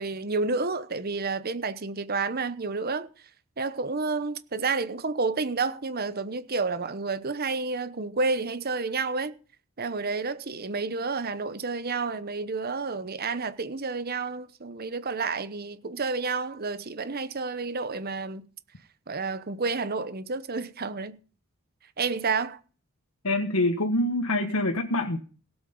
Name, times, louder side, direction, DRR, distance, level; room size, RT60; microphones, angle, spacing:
voice 1, 0.0-3.1 3.6-9.3 9.8-18.5 19.1-21.2 22.0-22.6, right 4 dB, 45° right, 1.0 m, -30 dB
voice 2, 23.2-25.2, left 1 dB, 80° left, 1.5 m, -25 dB
17.5 x 8.0 x 5.4 m
head